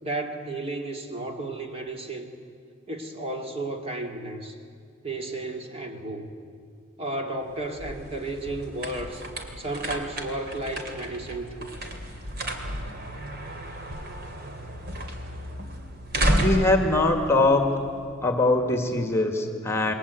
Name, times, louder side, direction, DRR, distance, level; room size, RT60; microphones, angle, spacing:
voice 1, 0.0-2.3 2.9-4.6 5.0-6.3 7.0-9.2 9.6-11.7, right 2 dB, 30° right, 3 dB, 2.3 m, -33 dB
sound 1, 7.4-18.2, right 1 dB, 50° right, 2.9 m, -32 dB
voice 2, 16.3-17.8 18.2-19.9, left 2 dB, 15° left, 5 dB, 1.7 m, -22 dB
28.5 x 21.5 x 8.3 m, 2.4 s
head